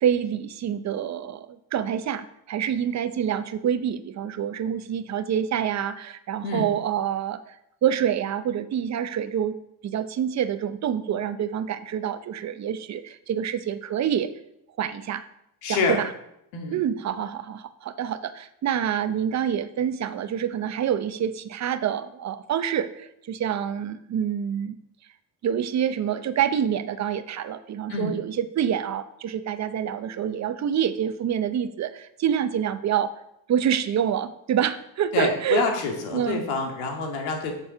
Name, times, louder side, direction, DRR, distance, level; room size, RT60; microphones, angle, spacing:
voice 1, 0.0-7.5 7.8-9.6 9.8-14.3 14.8-15.2 15.7-16.1 16.7-24.7 25.4-33.1 33.5-35.6 36.1-36.4, right 9 dB, 35° right, 12 dB, 0.7 m, -27 dB
voice 2, 15.6-16.0 16.5-16.8 27.9-28.1 35.1-37.5, left 4 dB, 90° left, 2 dB, 2.2 m, -27 dB
7.1 x 7.0 x 5.6 m, 0.79 s
cardioid pair, 110°, 48 cm